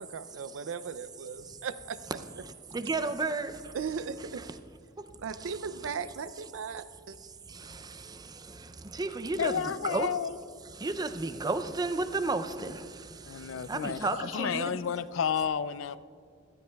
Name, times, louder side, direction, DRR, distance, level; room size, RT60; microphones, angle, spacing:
voice 1, 0.0-2.0 3.7-4.4 5.2-7.2, right 6 dB, 85° right, 0.5 m, -37 dB
voice 2, 2.7-3.5 8.9-10.1 10.8-12.8 13.7-14.8, right 3 dB, 20° right, 0.4 m, -31 dB
voice 3, 9.4-10.4 13.3-16.0, left 7 dB, 85° left, 0.4 m, -31 dB
16.0 x 13.5 x 2.3 m
head